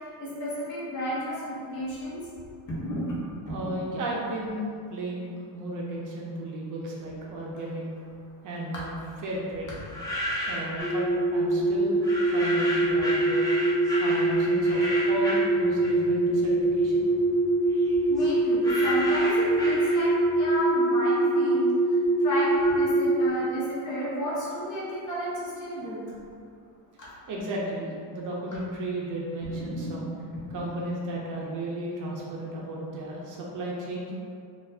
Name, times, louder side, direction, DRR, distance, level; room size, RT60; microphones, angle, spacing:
voice 1, 0.2-2.2 2.7-3.2 3.5-3.8 8.7-8.8 18.1-21.6 22.2-26.0 27.0-27.1 29.4-29.9 30.5-30.6, equal, 40° left, -7 dB, 1.0 m, -32 dB
voice 2, 3.4-7.9 8.4-8.9 9.2-9.7 10.5-13.5 14.0-17.0 27.3-30.1 30.5-34.2, right 1 dB, 45° right, -4 dB, 0.5 m, -34 dB
sound 1, 9.8-11.0 12.0-16.2 16.6-20.3, left 1 dB, 10° left, 0.4 m, -33 dB
sound 2, 10.8-23.3, right 2 dB, 25° right, 1.4 m, -24 dB
3.8 x 2.4 x 2.7 m, 2.3 s
cardioid pair, 155°, 44 cm